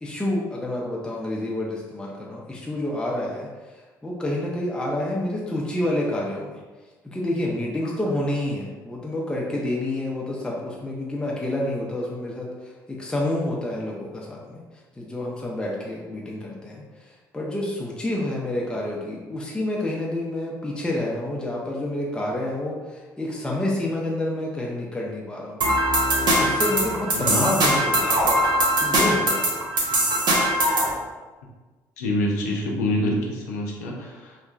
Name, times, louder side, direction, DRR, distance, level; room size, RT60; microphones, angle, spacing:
voice 1, 0.0-6.6 7.0-14.6 15.0-25.6 26.3-28.3 28.8-29.5 29.9-30.0, left 1 dB, 10° left, -4 dB, 0.5 m, -28 dB
sound 1, 25.6-30.9, right 1 dB, 55° right, 0.7 m, -21 dB
voice 2, 32.0-34.5, left 1 dB, 85° left, -1 dB, 0.4 m, -26 dB
2.9 x 2.2 x 2.3 m, 1.3 s
hypercardioid pair, 55°, 9 cm